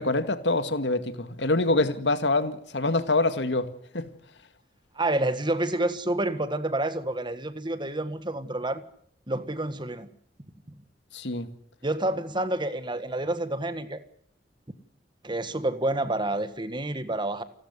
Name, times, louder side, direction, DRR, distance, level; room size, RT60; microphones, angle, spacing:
voice 1, 0.0-3.7 3.9-4.1 11.1-11.5, left 2 dB, 85° left, 2.1 m, -25 dB
voice 2, 4.9-8.8 9.3-10.1 10.7-10.8 11.8-14.0 15.2-17.4, right 1 dB, 25° right, 1.6 m, -28 dB
29.0 x 13.0 x 9.7 m
head